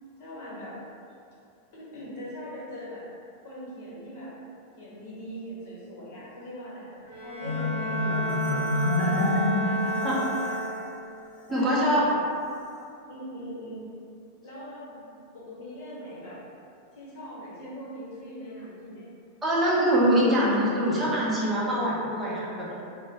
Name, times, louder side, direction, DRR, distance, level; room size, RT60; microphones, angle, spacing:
voice 1, 0.2-0.8 1.7-3.1 3.4-4.3 4.8-9.2 9.6-10.5 11.5-12.1 13.1-13.8 14.4-15.1 15.3-16.4 16.9-19.1, equal, 50° left, -9 dB, 1.0 m, -41 dB
Bowed string instrument, 7.0-11.1, right 1 dB, 55° right, 0.9 m, -32 dB
Marimba xylophone, 7.4-10.8, left 2 dB, 25° left, 1.0 m, -28 dB
voice 2, 11.5-12.0 19.4-22.8, equal, 15° right, -6 dB, 0.6 m, -24 dB
2.1 x 2.0 x 3.2 m, 2.5 s
figure-of-eight pair, 90°, 0 cm